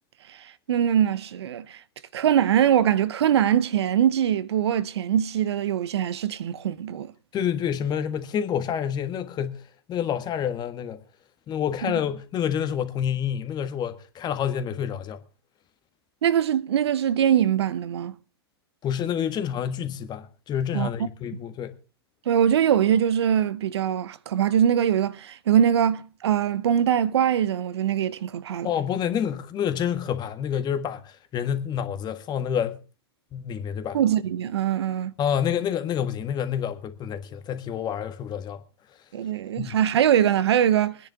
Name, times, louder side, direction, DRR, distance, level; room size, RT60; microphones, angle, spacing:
voice 1, 0.7-1.8 2.1-7.1 16.2-18.1 20.7-20.9 22.3-28.7 33.9-35.1 39.1-41.0, right 9 dB, 75° right, 0.8 m, -22 dB
voice 2, 7.3-11.0 11.5-15.2 18.8-21.8 28.6-32.8 33.3-34.0 35.2-38.6 39.6-39.8, left 8 dB, 30° left, 1.6 m, -28 dB
23.0 x 10.0 x 3.5 m
hypercardioid pair, 110°, 14 cm